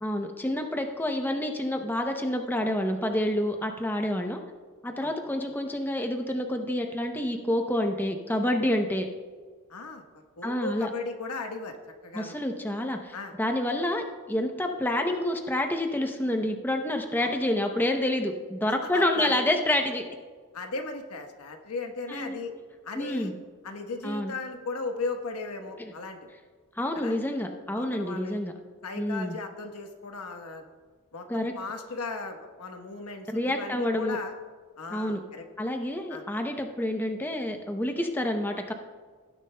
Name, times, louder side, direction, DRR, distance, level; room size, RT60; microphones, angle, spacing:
voice 1, 0.0-4.4 4.8-9.1 10.4-10.9 12.1-20.0 22.1-22.4 22.9-23.3 24.0-24.3 25.8-25.9 26.8-28.5 29.0-29.4 31.3-31.5 33.3-34.2 34.9-35.2 35.6-38.7, left 1 dB, 10° left, 4 dB, 0.6 m, -28 dB
voice 2, 9.7-10.0 10.4-11.8 12.0-12.4 13.1-13.3 17.2-17.3 18.9-19.4 20.5-22.5 22.8-23.3 23.6-26.2 26.9-27.2 27.7-28.4 28.8-30.7 31.1-34.3 34.8-35.5 36.1-36.2, left 3 dB, 90° left, 4 dB, 1.1 m, -36 dB
17.5 x 10.0 x 2.2 m, 1.5 s
head